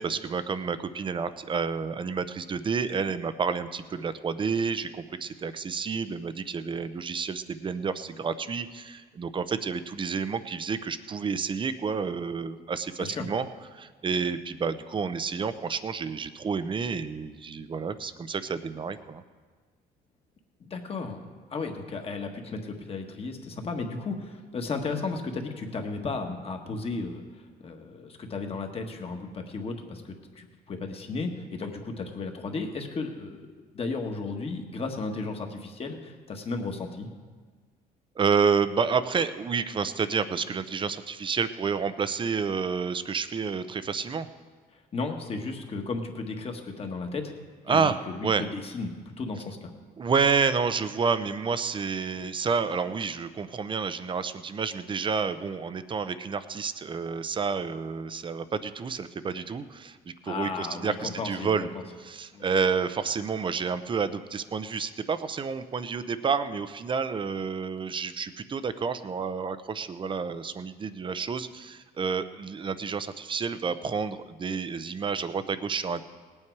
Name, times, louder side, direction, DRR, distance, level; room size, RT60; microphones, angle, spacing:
voice 1, 0.0-13.5 13.7-19.2 38.2-44.3 47.7-48.4 50.0-60.0 60.2-61.7 62.0-76.1, right 5 dB, 30° right, 12 dB, 0.6 m, -29 dB
voice 2, 20.6-27.2 27.6-33.5 33.7-37.1 44.7-47.3 47.7-49.7 60.2-61.5 62.3-62.5, left 3 dB, 35° left, 3 dB, 1.6 m, -34 dB
19.0 x 8.8 x 4.7 m, 1.5 s
cardioid pair, 110°, 17 cm